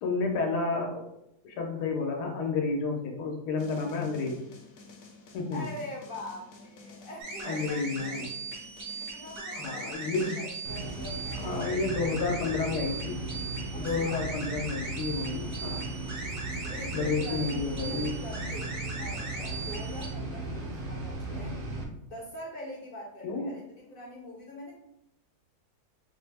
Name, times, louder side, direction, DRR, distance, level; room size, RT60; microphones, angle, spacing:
voice 1, 0.0-1.1 1.4-4.4 5.3-5.6 7.4-8.3 9.5-10.4 11.3-13.2 13.8-16.0 16.9-18.2 23.2-23.6, left 4 dB, 90° left, 1 dB, 1.4 m, -31 dB
sound 1, 3.6-11.6, left 3 dB, 70° left, 1.0 m, -50 dB
voice 2, 5.5-8.2 8.9-11.8 13.7-14.3 16.6-21.6 22.1-24.7, left 1 dB, 55° left, -2 dB, 0.6 m, -43 dB
sound 2, 7.2-20.1, right 3 dB, 70° right, 1.5 m, -39 dB
sound 3, 10.6-21.8, right 2 dB, 50° right, 0.6 m, -37 dB
4.8 x 2.1 x 3.3 m, 0.81 s
omnidirectional pair, 1.7 m